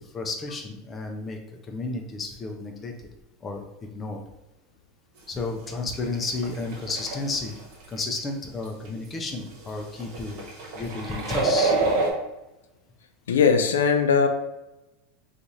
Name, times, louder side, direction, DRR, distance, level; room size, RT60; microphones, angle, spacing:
voice 1, 0.0-1.4 1.6-2.9 3.4-3.7 3.9-4.2 5.3-7.6 7.9-10.4 10.7-11.9, left 3 dB, 25° left, 3 dB, 0.6 m, -32 dB
sound 1, 5.4-5.5 5.9-8.0 8.7-8.9 9.3-9.4 9.6-9.7 9.9-12.1, right 3 dB, 60° right, 1.1 m, -27 dB
voice 2, 13.3-14.3, left 6 dB, 85° left, 7 dB, 0.3 m, -19 dB
2.8 x 2.5 x 4.0 m, 0.98 s
hypercardioid pair, 95°, 0 cm